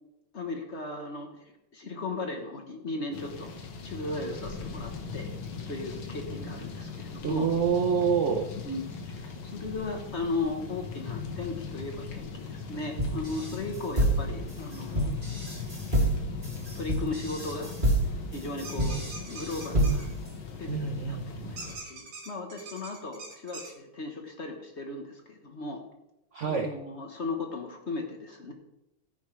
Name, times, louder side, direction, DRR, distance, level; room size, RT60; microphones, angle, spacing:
voice 1, 0.3-3.5 3.8-5.3 5.7-7.5 8.6-15.2 16.7-17.7 18.3-20.1 20.6-25.8 26.5-28.5, left 3 dB, 40° left, 3 dB, 1.2 m, -36 dB
sound 1, 3.1-21.8, left 5 dB, 80° left, 2.2 m, -39 dB
voice 2, 7.2-8.5 20.7-21.5 26.3-26.7, right 6 dB, 70° right, 5 dB, 0.7 m, -27 dB
sound 2, 13.0-20.3, right 1 dB, 25° right, 2.7 m, -28 dB
sound 3, 18.6-20.1 21.6-23.7, right 3 dB, 90° right, 3.1 m, -43 dB
13.5 x 9.9 x 3.2 m, 0.90 s
omnidirectional pair, 2.2 m